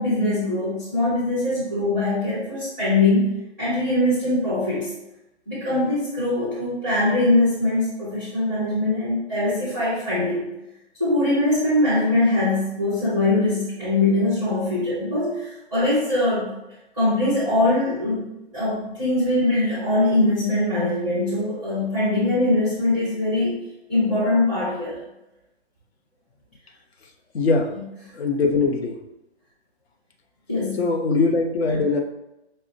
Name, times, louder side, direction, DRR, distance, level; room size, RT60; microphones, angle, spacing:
voice 1, 0.0-3.3 3.6-4.9 5.4-10.5 11.0-16.5 17.0-23.6 23.9-25.0 30.5-30.8, left 2 dB, ahead, -11 dB, 0.4 m, -22 dB
voice 2, 27.3-27.8 28.1-29.0 30.8-32.0, left 4 dB, 65° left, 4 dB, 0.6 m, -21 dB
5.2 x 2.1 x 2.5 m, 0.91 s
hypercardioid pair, 150°, 33 cm